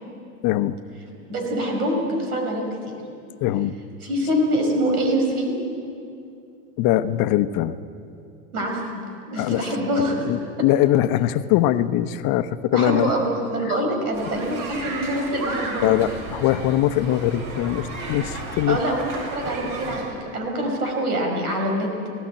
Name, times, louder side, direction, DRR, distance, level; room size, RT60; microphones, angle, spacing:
voice 1, 0.4-0.8 3.4-3.8 6.8-7.8 9.4-9.6 10.2-13.1 15.8-18.8, left 13 dB, 50° left, 12 dB, 1.0 m, -21 dB
voice 2, 1.3-2.7 4.0-5.5 8.5-9.0 9.3-10.3 12.7-15.9 18.7-20.1 20.3-22.1, equal, 90° right, 2 dB, 5.6 m, -24 dB
sound 1, 14.1-20.0, right 2 dB, 45° right, 7.0 m, -33 dB
19.5 x 16.0 x 8.9 m, 2.6 s
hypercardioid pair, 95°, 44 cm